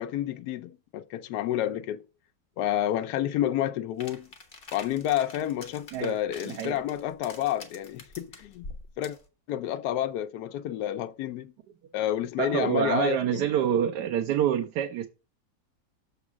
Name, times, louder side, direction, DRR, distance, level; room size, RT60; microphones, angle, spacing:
voice 1, 0.0-2.0 2.6-4.3 4.7-8.6 9.0-9.2 9.5-11.5 11.9-13.5, left 12 dB, 80° left, 1.1 m, -29 dB
sound 1, 4.0-9.3, left 3 dB, 35° left, 1.3 m, -46 dB
voice 2, 6.5-6.8 12.4-15.1, right 9 dB, 85° right, 1.3 m, -26 dB
7.0 x 3.6 x 6.1 m
omnidirectional pair, 1.8 m